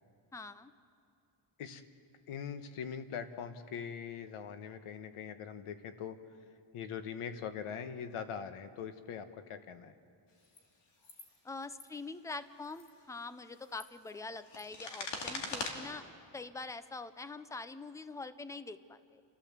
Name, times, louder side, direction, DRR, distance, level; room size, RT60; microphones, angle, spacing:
voice 1, 0.3-0.7 11.4-16.1 16.3-19.2, left 3 dB, 5° left, 13 dB, 0.4 m, -44 dB
voice 2, 2.3-6.2 6.7-10.0, left 7 dB, 90° left, 9 dB, 1.3 m, -42 dB
sound 1, 10.4-10.6 11.0-11.3 11.6-11.9 12.6-12.9 13.5-15.7, left 3 dB, 55° left, 2.5 m, -42 dB
29.5 x 13.0 x 7.4 m, 2.6 s
wide cardioid pair, 160°, 49 cm